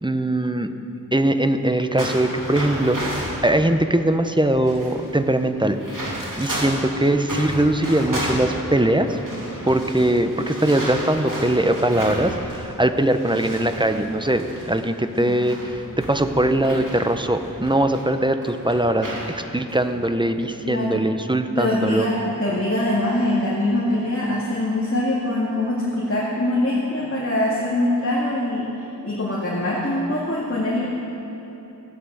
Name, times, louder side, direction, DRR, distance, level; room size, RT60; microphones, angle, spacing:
voice 1, 0.0-0.7 1.1-5.8 6.4-9.2 9.6-22.1, right 1 dB, 15° right, 8 dB, 0.7 m, -21 dB
sound 1, 2.0-3.4 4.1-4.2 4.4-6.9 7.2-12.7 13.0-18.0 18.4-19.3 19.7-19.9 20.4-20.7, right 1 dB, 65° right, 3.2 m, -32 dB
voice 2, 20.6-21.0 21.6-28.7 29.0-30.9, left 1 dB, 40° left, -6 dB, 2.2 m, -23 dB
14.5 x 9.3 x 7.6 m, 3.0 s
wide cardioid pair, 45°, 35 cm